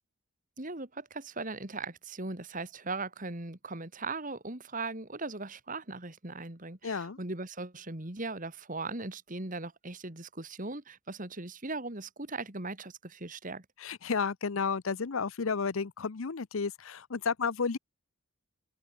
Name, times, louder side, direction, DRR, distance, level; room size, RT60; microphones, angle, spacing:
voice 1, 0.6-13.7, right 3 dB, 40° right, 2.4 m, -39 dB
voice 2, 6.8-7.2 13.8-17.8, left 5 dB, 75° left, 0.7 m, -32 dB
open air
head